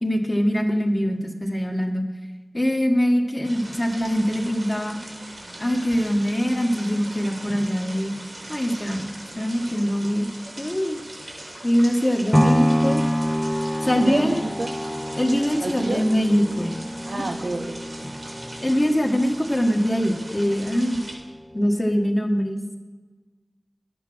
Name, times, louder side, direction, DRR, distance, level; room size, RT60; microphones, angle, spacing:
voice 1, 0.0-2.0 2.5-5.0 5.6-8.1 8.5-10.3 10.6-11.0 11.6-13.0 13.8-14.4 15.2-16.7 17.1-17.2 18.6-21.0 21.5-22.8, equal, 30° left, 3 dB, 1.6 m, -23 dB
sound 1, 3.4-21.1, right 1 dB, 70° right, 2.7 m, -39 dB
sound 2, 12.3-20.4 20.9-21.0, equal, 5° left, 0.6 m, -26 dB
voice 2, 14.0-14.8 15.6-16.1 17.1-17.8, right 2 dB, 85° right, 4 dB, 0.7 m, -29 dB
11.0 x 8.4 x 6.2 m, 1.3 s
wide cardioid pair, 50°, 0 cm